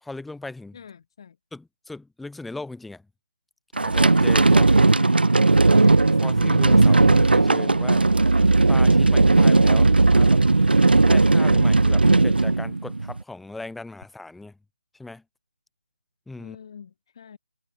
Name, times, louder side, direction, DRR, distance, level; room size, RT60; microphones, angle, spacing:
voice 1, 0.0-0.8 1.5-3.1 3.8-4.7 6.2-8.0 8.7-10.4 11.0-14.6 14.9-15.2 16.3-16.6, left 2 dB, ahead, 2.5 m, -38 dB
voice 2, 0.7-1.4 4.9-5.2 16.4-17.4, left 7 dB, 30° left, 7.8 m, -44 dB
sound 1, 3.8-13.2, right 3 dB, 75° right, 5.2 m, -17 dB
figure-of-eight pair, 170°, 5 cm